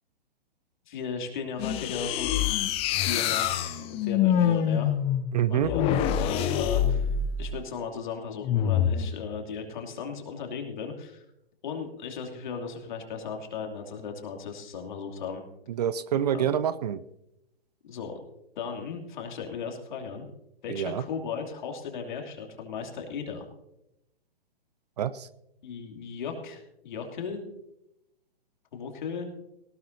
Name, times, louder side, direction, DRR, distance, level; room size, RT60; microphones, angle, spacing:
voice 1, 0.9-4.9 5.5-5.8 6.1-7.1 7.4-11.2 11.6-15.4 16.3-16.5 17.9-18.2 18.6-20.3 20.6-23.5 25.6-27.4 28.7-29.3, left 6 dB, 50° left, 3 dB, 2.8 m, -36 dB
sound 1, 1.6-7.5 8.4-9.1, left 9 dB, 20° left, 0.8 m, -26 dB
voice 2, 5.3-5.7 15.7-17.0 20.7-21.0 25.0-25.3, right 9 dB, 40° right, 16 dB, 0.6 m, -27 dB
19.0 x 16.5 x 2.8 m, 0.85 s
figure-of-eight pair, 120°, 31 cm